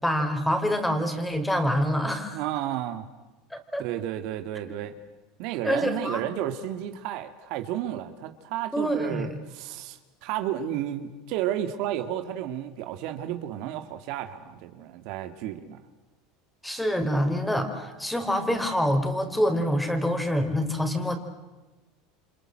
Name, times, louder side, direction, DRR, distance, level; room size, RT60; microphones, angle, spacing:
voice 1, 0.0-2.4 3.5-3.8 5.6-6.2 8.7-9.3 16.6-21.2, equal, 5° left, 4.6 m, -26 dB
voice 2, 2.3-3.1 3.8-4.9 5.4-15.8, right 11 dB, 65° right, 2.2 m, -32 dB
29.5 x 26.0 x 7.9 m
supercardioid pair, 110°, 0 cm